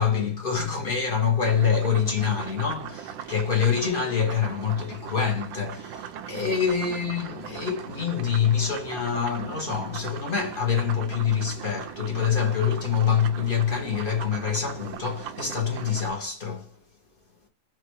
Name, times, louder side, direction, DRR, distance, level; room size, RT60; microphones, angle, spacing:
voice 1, 0.0-16.7, left 7 dB, 30° left, 1.4 m, -26 dB
sound 1, 1.4-16.1, right 9 dB, 75° right, 1.3 m, -39 dB
4.7 x 3.0 x 3.0 m
omnidirectional pair, 2.2 m